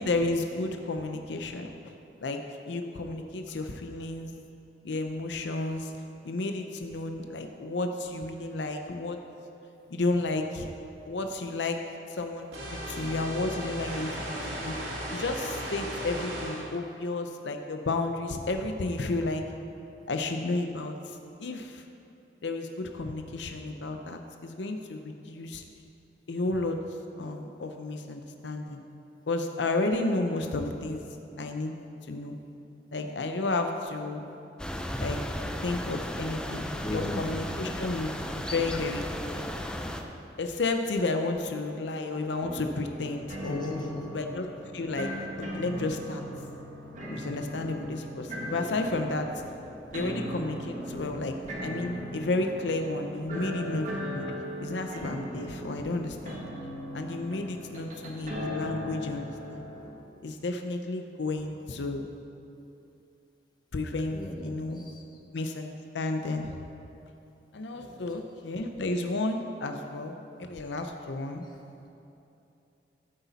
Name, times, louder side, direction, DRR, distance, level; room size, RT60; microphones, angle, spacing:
voice 1, 0.0-1.7 2.2-4.3 4.8-5.9 6.2-9.2 9.9-10.7 11.0-11.8 12.1-14.7 15.1-19.4 20.1-21.8 22.4-25.6 26.3-26.8 27.2-28.8 29.3-31.0 31.4-31.7 32.1-32.4 32.9-34.2 35.0-35.2 35.6-39.4 40.4-43.7 44.1-44.5 44.7-45.1 45.5-46.2 47.1-49.3 49.9-51.4 51.6-54.3 54.6-56.5 56.9-59.6 60.2-62.1 63.7-64.8 65.3-66.6 67.5-71.4, left 2 dB, 85° left, 5 dB, 0.6 m, -32 dB
sound 1, 12.5-16.7, equal, 80° right, 2.2 m, -36 dB
sound 2, 34.6-40.0, equal, 5° left, 0.5 m, -35 dB
voice 2, 36.7-37.5 43.4-44.0 64.0-65.0 67.7-68.0 71.4-71.6, left 1 dB, 25° left, -1 dB, 1.3 m, -37 dB
sound 3, 42.4-59.9, equal, 45° right, 1.7 m, -38 dB
14.5 x 8.2 x 4.1 m, 2.8 s
head